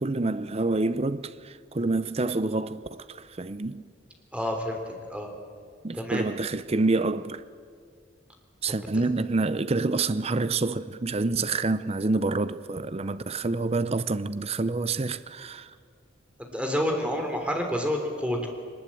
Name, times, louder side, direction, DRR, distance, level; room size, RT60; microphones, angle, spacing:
voice 1, 0.0-3.8 5.8-7.4 8.6-15.7, right 3 dB, 35° right, 0.6 m, -27 dB
voice 2, 4.3-5.3 5.9-6.2 8.9-9.0 16.4-18.5, equal, 5° right, 3.2 m, -29 dB
22.0 x 20.0 x 8.6 m
head